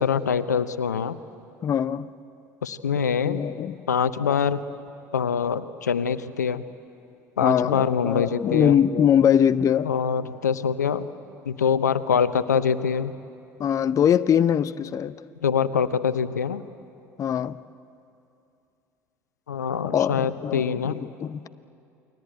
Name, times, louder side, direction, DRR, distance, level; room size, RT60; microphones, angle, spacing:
voice 1, 0.0-1.2 2.6-3.4 3.9-4.6 5.1-6.7 7.4-8.8 9.8-11.1 11.5-13.1 15.4-16.7 19.5-21.0, left 7 dB, 80° left, 0.7 m, -24 dB
voice 2, 1.6-2.1 3.2-3.8 4.2-4.4 7.4-9.9 13.6-15.2 17.2-17.6 19.8-21.5, left 9 dB, 35° left, 0.6 m, -22 dB
29.0 x 21.5 x 9.0 m
figure-of-eight pair, 65°, 9 cm